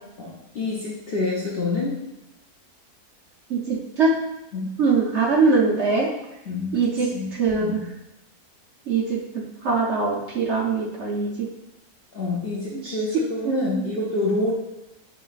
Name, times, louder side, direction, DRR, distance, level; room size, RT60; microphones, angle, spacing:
voice 1, 0.2-2.0 4.5-4.7 6.5-7.8 12.1-14.5, left 2 dB, 55° left, -4 dB, 0.7 m, -28 dB
voice 2, 3.5-4.2 4.8-6.1 6.7-7.8 8.9-9.2 9.6-11.5 12.7-13.0 13.4-13.8, right 4 dB, 60° right, -3 dB, 0.8 m, -22 dB
6.9 x 3.0 x 2.4 m, 0.92 s
omnidirectional pair, 1.6 m